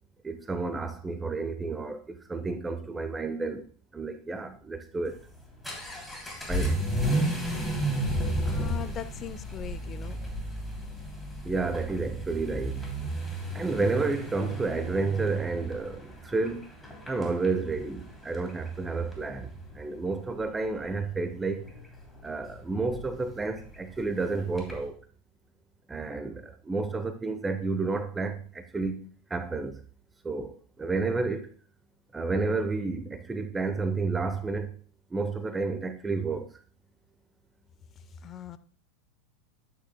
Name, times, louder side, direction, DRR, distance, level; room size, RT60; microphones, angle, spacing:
voice 1, 0.2-3.6 3.9-5.2 6.5-6.8 11.4-12.9 13.5-16.7 17.1-21.7 22.2-24.9 25.9-29.8 30.2-31.5 32.1-34.7 35.1-36.5, right 3 dB, 15° right, 0.8 m, -31 dB
Vehicle / Accelerating revving vroom, 5.1-24.9, right 1 dB, 10° left, 3.0 m, -34 dB
voice 2, 8.4-10.2 38.2-38.6, left 6 dB, 35° left, 0.7 m, -36 dB
12.0 x 8.9 x 2.2 m
hypercardioid pair, 85°, 0 cm